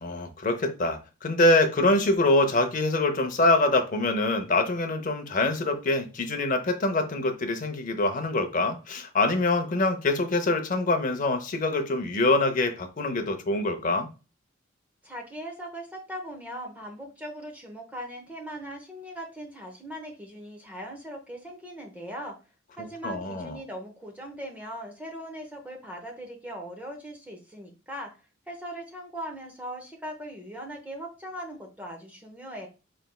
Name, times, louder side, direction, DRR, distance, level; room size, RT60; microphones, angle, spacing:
voice 1, 0.0-14.1 23.0-23.6, left 2 dB, 40° left, 0.6 m, -24 dB
voice 2, 15.0-22.4 22.8-28.2 28.5-32.7, equal, 5° right, 0.7 m, -39 dB
4.2 x 3.3 x 2.2 m
head